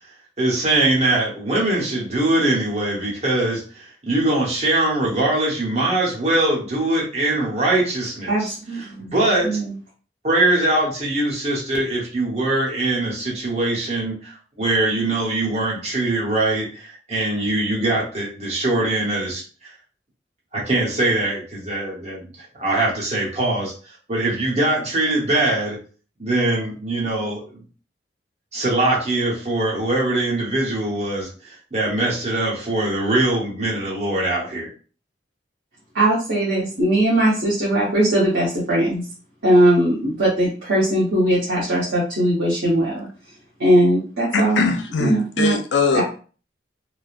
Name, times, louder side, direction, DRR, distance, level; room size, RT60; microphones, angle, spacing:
voice 1, 0.4-9.6 10.2-19.7 20.5-23.7 24.1-25.8 26.2-27.6 28.5-34.7, right 2 dB, 40° right, 0.9 m, -22 dB
voice 2, 8.3-9.1 9.4-9.7 35.9-39.0 39.4-43.1 43.6-44.6 45.0-45.5 45.9-46.0, right 1 dB, 85° right, 1.0 m, -19 dB
voice 3, 44.3-46.0, left 4 dB, 80° left, 0.5 m, -21 dB
3.1 x 2.1 x 2.4 m
head